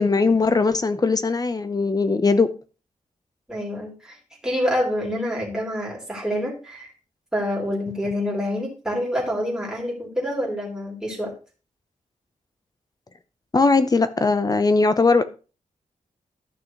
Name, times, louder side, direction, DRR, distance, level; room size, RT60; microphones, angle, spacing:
voice 1, 0.0-2.5 13.5-15.2, left 3 dB, 30° left, 11 dB, 0.8 m, -19 dB
voice 2, 3.5-4.2 4.4-6.9 7.3-11.3, equal, 5° right, -3 dB, 3.4 m, -27 dB
12.0 x 6.3 x 3.2 m, 0.34 s
wide cardioid pair, 125°, 14 cm